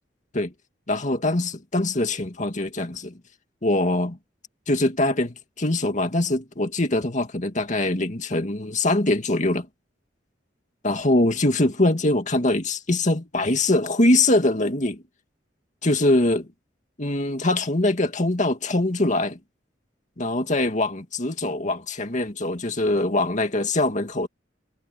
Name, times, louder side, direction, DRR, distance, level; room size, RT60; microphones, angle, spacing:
voice 1, 0.9-3.1 3.6-4.2 4.7-9.7 10.8-15.0 15.8-16.5 17.0-19.4 20.2-24.3, left 2 dB, 40° left, 2.2 m, -23 dB
head